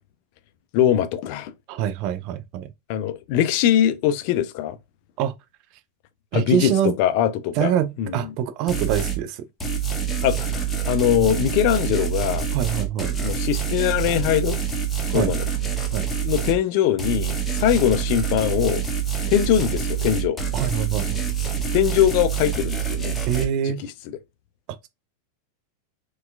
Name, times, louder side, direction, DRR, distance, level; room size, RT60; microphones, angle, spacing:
voice 1, 0.7-1.5 2.9-4.8 6.3-8.4 10.2-12.5 13.2-14.6 15.1-15.5 16.2-18.8 19.3-20.4 21.7-23.2 23.6-23.9, left 11 dB, 45° left, 0.4 m, -22 dB
voice 2, 1.7-2.7 5.2-5.3 6.3-6.9 7.6-9.4 12.5-13.2 15.1-15.3 15.9-16.1 20.5-21.3 23.3-23.8, right 9 dB, 40° right, 0.4 m, -24 dB
sound 1, 8.7-9.2 9.6-16.6 17.0-23.5, right 7 dB, 10° left, 0.8 m, -26 dB
4.2 x 2.3 x 2.2 m
figure-of-eight pair, 90°, 0 cm